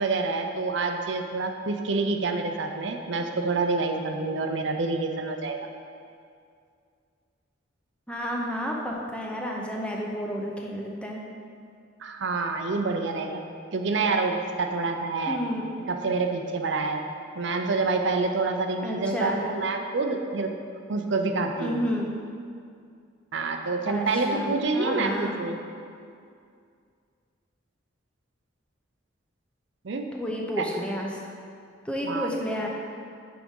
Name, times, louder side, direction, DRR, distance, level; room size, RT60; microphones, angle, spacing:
voice 1, 0.0-5.7 12.0-13.4 13.7-15.4 15.9-17.0 17.3-20.5 20.9-21.8 23.3-25.6 29.8-30.1 30.6-30.7 32.0-32.3, right 3 dB, 65° right, 4 dB, 0.5 m, -27 dB
voice 2, 8.1-11.2 15.3-15.7 18.8-19.4 21.6-22.2 23.9-25.3 30.1-31.3 31.8-32.7, equal, 5° left, -2 dB, 0.6 m, -31 dB
6.0 x 4.9 x 5.4 m, 2.3 s
head